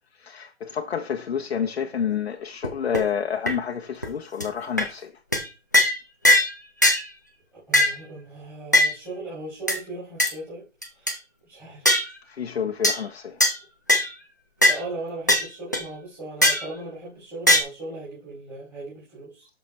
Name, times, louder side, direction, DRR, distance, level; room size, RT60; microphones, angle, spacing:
voice 1, 0.2-5.1 12.4-13.4, left 7 dB, 55° left, 1.0 m, -29 dB
sound 1, 2.6-2.7 2.9-3.0 3.5-3.6 4.0-4.1 4.4-4.5 4.8-4.9 5.3-5.4 5.7-6.0 6.2-6.5 6.8-7.0 7.7-8.0 8.7-8.9 9.7-9.8 10.2-10.3 10.8-11.1 11.8-12.1 12.8-13.0 13.4-13.5 13.9-14.1 14.6-14.8 15.3-15.4 15.7-15.8 16.4-16.7 17.5-17.6, left 1 dB, 15° left, 0.5 m, -19 dB
voice 2, 7.5-10.6 10.9-11.2 11.4-11.9 12.5-12.6 13.4-13.5 14.7-19.5, right 2 dB, 5° right, 2.8 m, -38 dB
12.5 x 5.9 x 3.2 m
hypercardioid pair, 170°, 37 cm